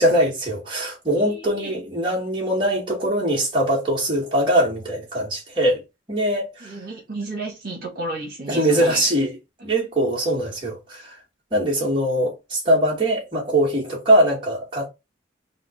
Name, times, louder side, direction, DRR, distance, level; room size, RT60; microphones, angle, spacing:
voice 1, 0.0-5.8 6.1-6.7 8.5-9.3 9.6-11.1 11.5-14.9, right 1 dB, 30° right, 2.2 m, -21 dB
voice 2, 1.1-1.7 6.6-9.0 9.6-9.7, right 2 dB, 55° right, 1.8 m, -32 dB
4.1 x 2.7 x 4.5 m
head